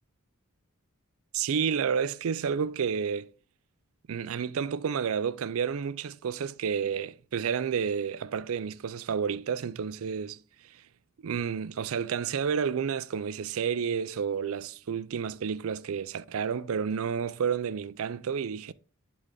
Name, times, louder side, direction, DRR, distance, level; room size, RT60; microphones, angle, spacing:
voice 1, 1.3-3.3 4.1-10.4 11.2-18.7, right 7 dB, 70° right, 0.4 m, -30 dB
11.0 x 3.9 x 3.8 m
head